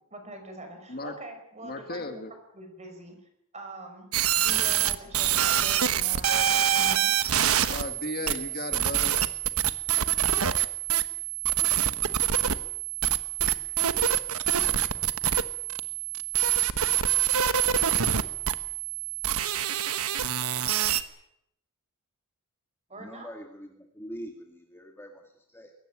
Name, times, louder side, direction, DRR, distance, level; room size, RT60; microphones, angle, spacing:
voice 1, 0.1-2.3 2.5-3.2 3.5-4.1 4.4-7.2 22.9-23.3, right 2 dB, 30° right, 5 dB, 5.9 m, -43 dB
voice 2, 1.6-2.3 7.7-9.2, left 2 dB, 45° left, 6 dB, 2.0 m, -35 dB
sound 1, 4.1-21.0, right 10 dB, 85° right, 1.2 m, -26 dB
voice 3, 22.9-25.7, equal, 10° left, 2 dB, 2.2 m, -44 dB
22.0 x 17.5 x 9.0 m, 0.75 s
head